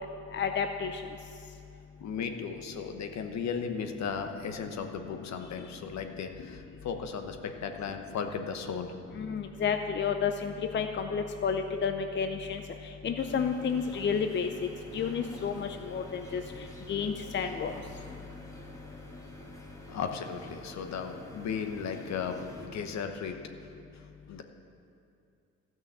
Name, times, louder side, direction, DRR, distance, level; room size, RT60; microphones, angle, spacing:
voice 1, 0.3-1.0 9.2-12.6 13.0-16.4 16.9-17.7, left 6 dB, 40° left, 6 dB, 0.6 m, -31 dB
voice 2, 2.0-8.9 19.9-23.4 24.3-24.4, left 6 dB, 65° left, 6 dB, 1.1 m, -36 dB
sound 1, 13.2-22.7, equal, 10° left, 1.5 m, -48 dB
13.5 x 6.2 x 7.5 m, 2.5 s
cardioid pair, 90°, 30 cm